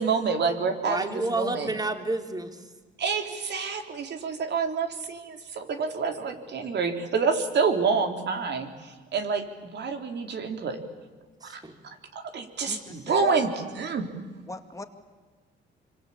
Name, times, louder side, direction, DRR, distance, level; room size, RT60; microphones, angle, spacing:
voice 1, 0.0-1.7 3.0-10.8 11.4-11.6 12.1-14.1, right 5 dB, 60° right, 5 dB, 3.7 m, -28 dB
voice 2, 0.8-2.7 11.4-11.8, right 2 dB, 20° right, 6 dB, 2.9 m, -30 dB
voice 3, 12.7-13.4 14.5-14.8, left 2 dB, 15° left, 6 dB, 2.4 m, -40 dB
26.0 x 25.0 x 8.6 m, 1.4 s
cardioid pair, 90°, 20 cm